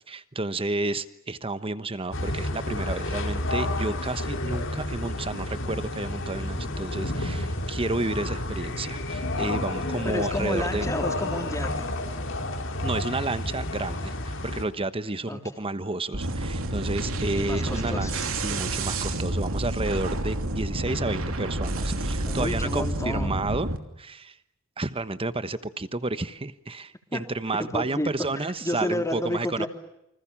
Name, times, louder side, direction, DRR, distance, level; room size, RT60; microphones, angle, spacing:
voice 1, 0.1-10.9 12.8-18.1 18.4-23.7 24.0-24.4 24.8-29.7, right 2 dB, 25° right, 13 dB, 1.2 m, -31 dB
sound 1, 2.1-14.6, left 1 dB, 65° left, 3.5 m, -30 dB
voice 2, 10.0-11.9 15.3-15.4 17.4-18.3 22.2-23.4 27.1-27.2 27.6-28.1 28.6-29.7, left 1 dB, 15° left, 4 dB, 3.6 m, -30 dB
sound 2, 16.1-23.8, right 1 dB, 80° right, 2.9 m, -29 dB
29.0 x 25.5 x 7.3 m, 0.79 s
head